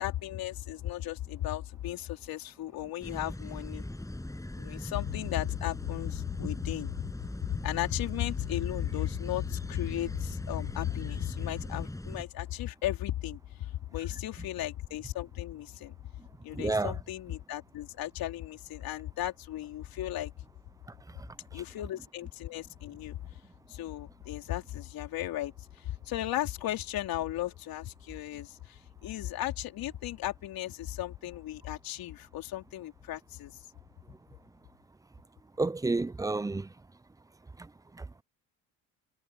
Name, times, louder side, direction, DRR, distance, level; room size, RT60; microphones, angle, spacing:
voice 1, 0.0-3.8 4.6-7.0 7.5-15.9 16.4-20.3 21.5-23.2 23.7-33.5, left 13 dB, 65° left, 3.9 m, -35 dB
sound 1, 3.0-12.3, left 1 dB, 10° left, 8.0 m, -40 dB
voice 2, 16.5-16.9 35.6-36.7 38.0-38.1, right 3 dB, 10° right, 0.6 m, -29 dB
supercardioid pair, 90°, 37 cm